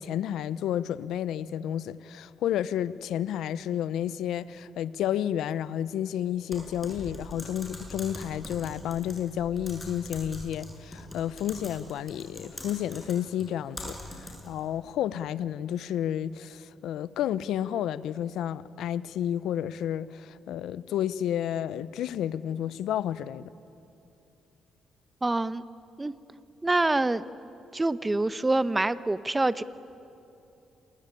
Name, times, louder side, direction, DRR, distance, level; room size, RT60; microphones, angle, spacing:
voice 1, 0.0-23.4, left 10 dB, 80° left, 0.7 m, -31 dB
Typing, 6.5-14.6, left 1 dB, 15° left, 7.5 m, -43 dB
voice 2, 25.2-25.6 26.0-26.1 26.6-27.3 27.7-29.6, right 2 dB, 15° right, 0.9 m, -26 dB
27.5 x 21.5 x 9.8 m
cardioid pair, 90°, 0 cm